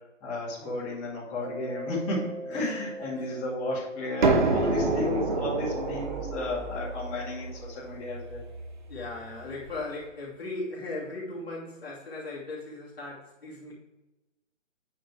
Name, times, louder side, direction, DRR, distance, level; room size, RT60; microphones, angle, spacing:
voice 1, 0.2-8.4, left 2 dB, 15° left, -11 dB, 2.5 m, -33 dB
Mallet percussion, 1.4-7.8, right 2 dB, 75° right, 1.7 m, -42 dB
voice 2, 2.5-3.4 8.9-13.7, left 2 dB, 50° left, -5 dB, 2.8 m, -38 dB
sound 1, 4.2-9.8, right 3 dB, 35° right, 1.0 m, -28 dB
9.1 x 4.1 x 4.9 m, 1.0 s
hypercardioid pair, 165°, 39 cm